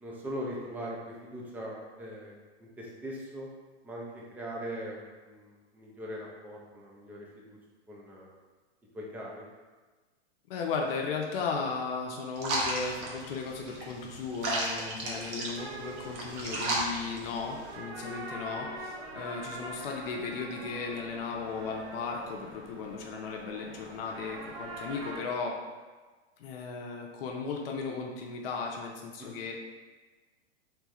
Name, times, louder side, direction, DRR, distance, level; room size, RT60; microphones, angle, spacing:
voice 1, 0.0-3.5 3.8-7.6 7.9-8.3 8.9-9.4 15.1-15.3 29.2-29.3, equal, 5° right, -4 dB, 0.3 m, -41 dB
voice 2, 10.5-25.6 26.4-29.5, left 4 dB, 55° left, 0 dB, 0.7 m, -36 dB
sound 1, 12.4-17.8, right 1 dB, 40° right, 0.9 m, -34 dB
sound 2, 15.6-25.2, right 2 dB, 65° right, 1.0 m, -44 dB
3.4 x 3.2 x 3.0 m, 1.3 s
hypercardioid pair, 125°, 34 cm